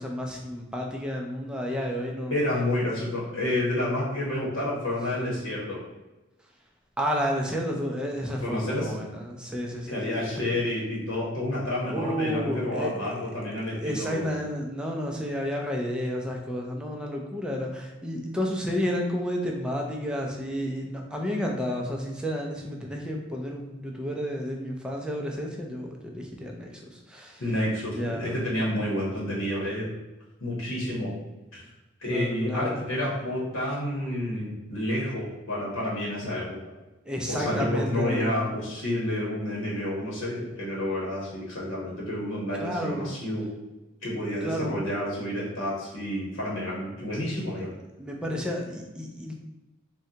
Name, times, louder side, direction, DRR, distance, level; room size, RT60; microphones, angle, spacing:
voice 1, 0.0-2.4 5.1-5.5 7.0-10.5 11.8-13.3 13.7-27.4 27.9-28.4 28.7-28.9 32.1-32.8 37.1-38.5 42.5-43.1 44.4-44.8 48.0-49.3, equal, 5° right, -1 dB, 0.4 m, -31 dB
voice 2, 2.3-5.8 8.4-8.9 9.9-14.3 27.4-29.9 30.4-31.1 31.5-31.6 32.0-36.6 37.3-43.5 44.0-47.7, left 1 dB, 90° left, -5 dB, 0.9 m, -29 dB
3.7 x 2.2 x 2.8 m, 1.1 s
head